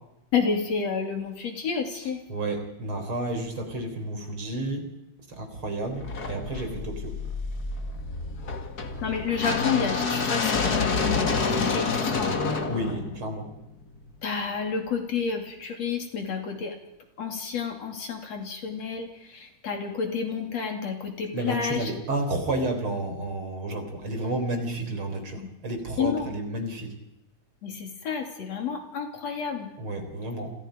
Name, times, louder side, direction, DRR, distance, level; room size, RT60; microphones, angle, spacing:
voice 1, 0.3-2.2 9.0-12.4 14.2-16.8 17.2-21.9 25.4-25.5 26.0-26.3 27.6-29.7, left 6 dB, 60° left, 4 dB, 3.8 m, -30 dB
voice 2, 1.9-4.9 5.3-7.1 12.7-13.5 21.3-26.9 29.8-30.5, right 1 dB, 40° right, 5 dB, 4.6 m, -31 dB
sound 1, 6.0-14.1, left 4 dB, 35° left, 2.0 m, -28 dB
29.5 x 27.5 x 5.2 m, 0.89 s
omnidirectional pair, 3.5 m